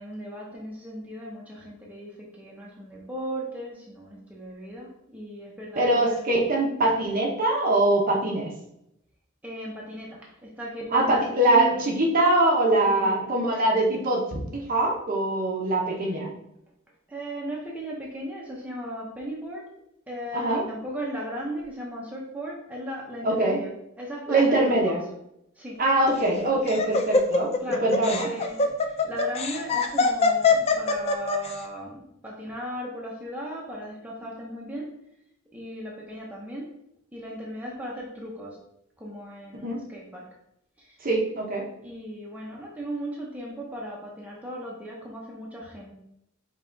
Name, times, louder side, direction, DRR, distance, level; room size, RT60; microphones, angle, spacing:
voice 1, 0.0-6.4 9.4-11.9 12.9-13.4 17.1-19.6 20.1-23.7 24.0-25.0 25.6-25.8 27.6-34.9 35.5-36.7 37.1-38.6 39.0-40.3 40.8-41.1 41.8-45.9, equal, 5° right, -3 dB, 0.7 m, -37 dB
voice 2, 5.8-8.5 10.9-14.2 14.5-16.3 20.3-20.6 23.2-23.6 24.3-25.0 25.8-27.5 27.8-28.3 39.6-39.8 41.0-41.6, right 2 dB, 40° right, -1 dB, 0.9 m, -23 dB
Laughter, 26.1-31.5, left 4 dB, 30° left, 0.4 m, -23 dB
5.5 x 2.4 x 3.8 m, 0.80 s
head